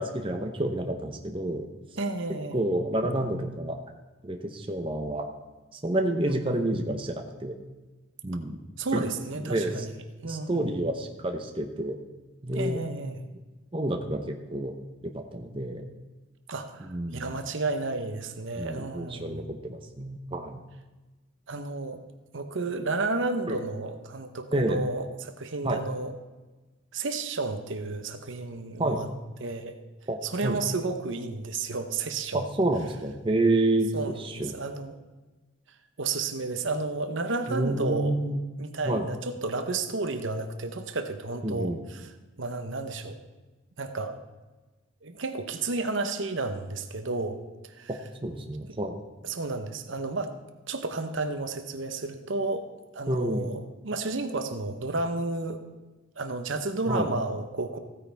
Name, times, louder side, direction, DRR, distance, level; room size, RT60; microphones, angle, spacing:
voice 1, 0.0-1.6 2.5-3.8 4.2-5.3 5.7-7.6 8.2-8.6 8.9-9.0 9.4-9.9 10.2-12.0 12.4-12.8 13.7-14.7 15.1-15.8 16.8-17.2 18.6-20.6 23.5-23.6 24.5-24.8 25.6-25.8 28.8-29.0 30.1-30.6 32.3-34.6 37.5-38.4 38.9-39.1 41.4-41.8 47.9-49.0 53.1-53.5 56.9-57.1, right 1 dB, 25° right, 4 dB, 0.8 m, -29 dB
voice 2, 2.0-2.7 6.2-6.6 8.8-9.9 10.2-10.7 12.5-13.2 16.5-19.4 21.5-22.0 22.3-26.1 26.9-29.1 29.4-29.7 30.2-32.4 33.9-35.0 36.0-38.2 38.6-42.1 42.4-43.2 43.8-44.2 45.0-47.9 49.2-50.3 50.7-52.7 52.9-55.6 56.2-57.8, right 3 dB, 70° right, 8 dB, 0.9 m, -32 dB
15.5 x 9.6 x 3.5 m, 1.2 s
head